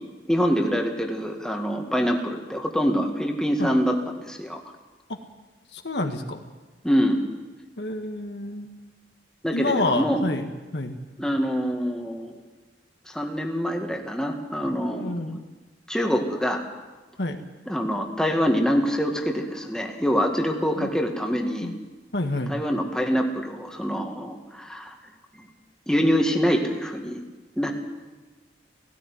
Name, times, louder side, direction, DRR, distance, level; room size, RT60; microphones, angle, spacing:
voice 1, 0.3-4.6 6.8-7.2 9.4-10.2 11.2-12.3 13.1-15.3 15.9-16.6 17.7-21.7 22.5-25.0 25.3-25.5 25.9-27.2 27.6-27.7, equal, 5° left, 2 dB, 1.9 m, -25 dB
voice 2, 5.7-6.4 7.8-8.7 9.5-11.0 14.9-15.4 17.2-17.4 20.8-20.9 21.6-21.8 22.1-22.5, left 2 dB, 70° left, 5 dB, 1.8 m, -28 dB
17.5 x 16.0 x 9.7 m, 1.2 s
head